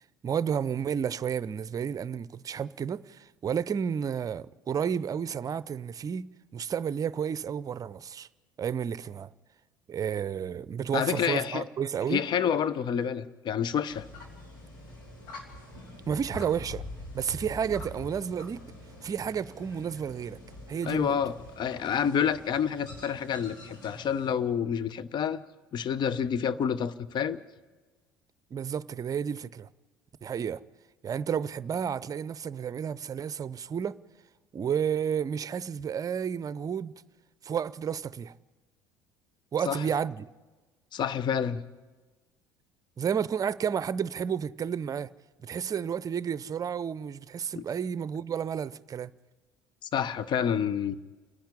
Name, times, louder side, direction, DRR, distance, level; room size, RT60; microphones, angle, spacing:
voice 1, 0.2-6.3 6.5-8.3 8.6-9.3 9.9-12.2 16.1-16.8 17.1-18.6 19.0-20.4 20.7-21.2 28.5-29.7 30.2-30.6 31.0-34.0 34.5-36.9 37.4-38.3 39.5-40.3 43.0-45.1 45.4-49.1, right 7 dB, 35° right, 0.6 m, -31 dB
voice 2, 10.9-11.7 12.1-14.1 20.9-25.4 25.7-27.4 39.7-39.9 40.9-41.6 47.6-47.7 49.8-51.0, left 8 dB, 45° left, 0.9 m, -28 dB
sound 1, 13.9-24.3, left 1 dB, 75° left, 3.3 m, -45 dB
29.0 x 10.5 x 9.8 m
hypercardioid pair, 65°, 11 cm